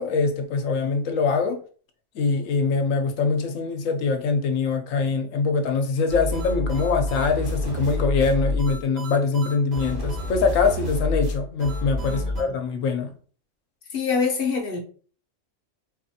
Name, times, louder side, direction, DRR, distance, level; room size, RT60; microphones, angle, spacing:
voice 1, 0.0-1.6 2.1-13.1, left 4 dB, 85° left, 1.1 m, -23 dB
sound 1, 6.1-12.4, left 1 dB, 55° right, 1.6 m, -28 dB
voice 2, 12.0-12.5 13.9-14.8, left 5 dB, 55° left, 0.8 m, -26 dB
4.3 x 2.4 x 2.7 m
omnidirectional pair, 1.3 m